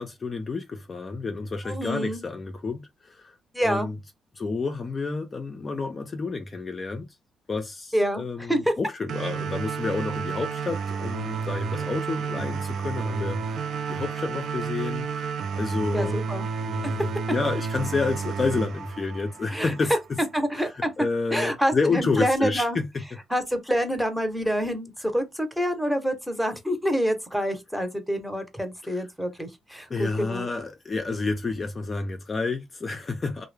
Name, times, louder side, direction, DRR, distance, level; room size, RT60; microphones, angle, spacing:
voice 1, 0.0-3.3 3.6-4.0 4.3-7.1 7.5-16.2 16.6-19.9 20.5-20.7 21.0-22.9 28.8-29.0 29.9-33.4, left 4 dB, 35° left, 0.4 m, -29 dB
voice 2, 1.6-2.2 3.5-3.9 7.9-8.7 15.9-16.5 19.5-19.7 20.3-20.9 21.3-22.8 23.3-30.5, equal, ahead, 0.7 m, -27 dB
sound 1, 9.1-20.1, right 6 dB, 70° right, 0.3 m, -31 dB
2.2 x 2.0 x 3.2 m
cardioid pair, 90°, 0 cm